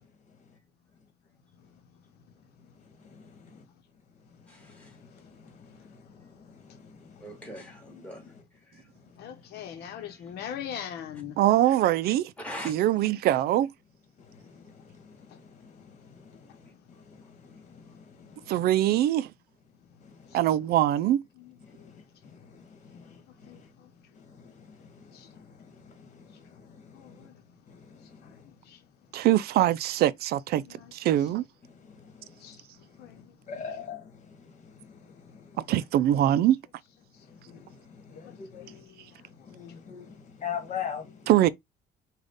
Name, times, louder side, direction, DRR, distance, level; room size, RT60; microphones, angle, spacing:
voice 1, 3.0-3.6 4.6-7.5 8.2-8.3 14.2-18.5 20.0-20.4 21.6-23.7 24.1-27.3 27.7-28.5 31.6-33.1 33.5-35.6 37.3-38.8 39.1-41.3, left 7 dB, 45° left, 1.7 m, -45 dB
voice 2, 4.5-5.0 7.2-8.9 9.7-9.9 12.4-12.8, equal, 10° left, 2.3 m, -43 dB
voice 3, 9.2-11.4 20.3-20.4 21.4-21.9 22.9-23.2 23.4-23.9 25.1-25.3 26.9-27.3 28.2-28.3 28.7-28.8 30.6-30.9 31.2-31.4 32.4-32.6 33.0-33.3 37.6-37.7 38.2-39.1, left 9 dB, 75° left, 1.0 m, -42 dB
voice 4, 11.4-12.3 12.6-13.7 18.5-19.3 20.3-21.2 29.1-30.6 30.9-31.4 35.7-36.6 41.3-41.5, right 13 dB, 70° right, 0.4 m, -23 dB
5.0 x 2.4 x 3.9 m
cardioid pair, 110°, 17 cm